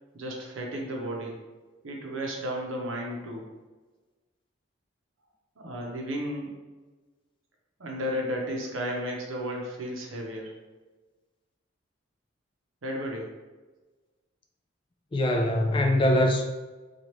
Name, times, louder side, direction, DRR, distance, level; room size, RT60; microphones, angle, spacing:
voice 1, 0.1-1.4 1.8-3.4 5.6-6.6 7.8-10.5 12.8-13.3, equal, 90° right, 0 dB, 0.7 m, -33 dB
voice 2, 15.1-16.4, left 1 dB, 25° left, 2 dB, 0.3 m, -22 dB
2.9 x 2.4 x 3.1 m, 1.3 s
head